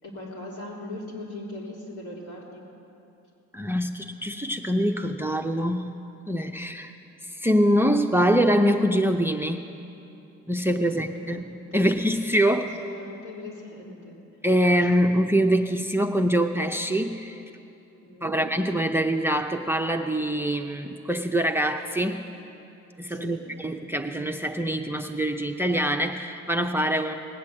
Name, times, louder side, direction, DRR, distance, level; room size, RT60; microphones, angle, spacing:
voice 1, 0.0-2.7 6.5-6.8 10.7-11.9 12.5-14.2 18.0-18.3 23.1-23.4, left 1 dB, 75° left, -4 dB, 3.8 m, -40 dB
voice 2, 3.5-5.9 6.3-6.9 7.3-9.7 10.5-12.7 14.4-17.4 18.2-22.3 23.0-27.2, equal, 10° right, 6 dB, 0.6 m, -24 dB
19.0 x 8.2 x 7.7 m, 2.8 s
cardioid pair, 90°, 30 cm